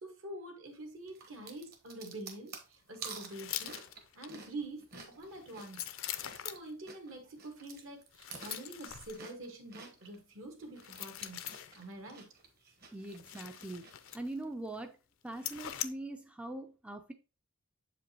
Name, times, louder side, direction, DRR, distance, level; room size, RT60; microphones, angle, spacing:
voice 1, 0.0-3.8 4.1-5.9 6.3-11.4 11.7-12.3, right 2 dB, 70° right, 1.6 m, -46 dB
sound 1, 1.1-6.6 6.9-10.2 10.6-14.2, right 5 dB, 45° right, 1.2 m, -50 dB
sound 2, 3.3-4.3 5.3-6.7 8.1-9.2 10.8-11.8 13.1-14.4 14.7-14.8 15.3-15.9, left 12 dB, 65° left, 0.5 m, -42 dB
voice 2, 12.9-13.9 14.1-14.9 15.2-17.1, right 2 dB, 5° right, 0.3 m, -42 dB
7.4 x 5.0 x 2.9 m
head